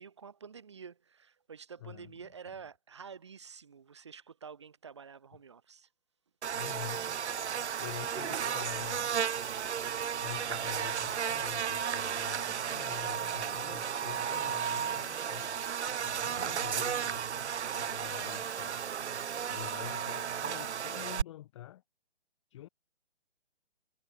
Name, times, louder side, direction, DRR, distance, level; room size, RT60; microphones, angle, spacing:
voice 1, 0.0-5.9 7.7-8.6, right 6 dB, 25° right, 0.4 m, -49 dB
voice 2, 1.8-2.1 2.5-2.6 6.5-9.1 10.2-15.6 15.9-17.2 17.7-18.9 19.5-21.8 22.5-22.7, left 14 dB, 25° left, 1.2 m, -46 dB
Buzz, 6.4-21.2, right 8 dB, 80° right, 0.5 m, -34 dB
figure-of-eight pair, 135°, 34 cm